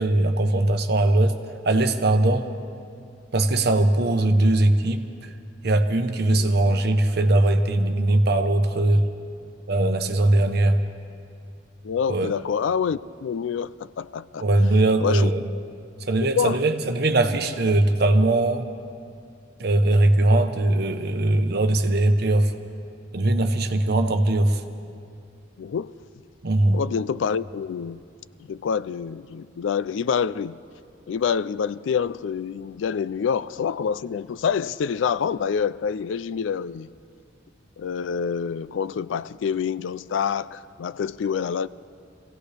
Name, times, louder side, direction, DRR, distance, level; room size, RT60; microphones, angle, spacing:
voice 1, 0.0-1.4 1.6-2.5 3.3-5.3 5.6-9.0 9.7-10.8 12.1-12.3 14.4-15.4 16.1-18.7 19.6-22.5 23.1-24.6 26.4-26.8, right 2 dB, 55° right, 0.9 m, -20 dB
voice 2, 11.8-14.4 15.0-15.3 16.4-16.6 25.6-26.0 26.7-28.0 28.4-30.6 31.1-36.9 37.8-41.7, left 7 dB, 75° left, 0.3 m, -27 dB
25.5 x 16.5 x 3.4 m
head